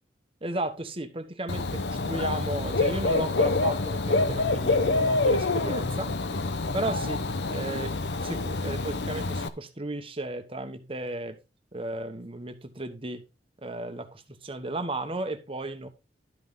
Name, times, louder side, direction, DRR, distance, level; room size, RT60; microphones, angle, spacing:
voice 1, 0.4-6.1 6.7-7.2 7.5-11.4 11.7-13.2 13.6-15.9, right 2 dB, 30° right, 1.2 m, -34 dB
Dog / Bird, 1.5-9.5, left 3 dB, 75° left, 0.8 m, -27 dB
12.0 x 5.6 x 3.9 m
head